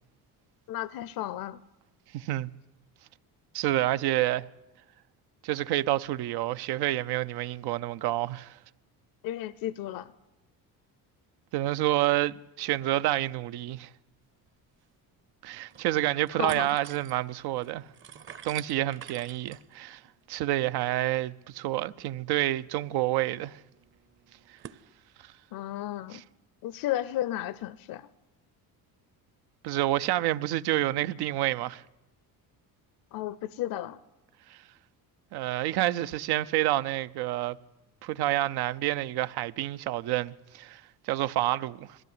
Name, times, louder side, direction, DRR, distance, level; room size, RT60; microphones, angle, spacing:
voice 1, 0.7-1.6 9.2-10.1 16.4-16.7 25.5-26.2 26.6-28.1 33.1-34.0, left 13 dB, 65° left, 0.6 m, -33 dB
voice 2, 2.1-2.5 3.5-4.5 5.4-8.6 11.5-13.9 15.4-17.9 18.4-20.0 20.3-23.6 29.6-31.8 34.5-34.6 35.3-37.6 38.0-42.0, right 15 dB, 90° right, 0.7 m, -28 dB
sound 1, 14.5-14.6 14.8-14.9 15.4-15.9 16.2-24.8, right 8 dB, 35° right, 0.7 m, -50 dB
21.5 x 15.0 x 9.6 m
cardioid pair, 150°, 37 cm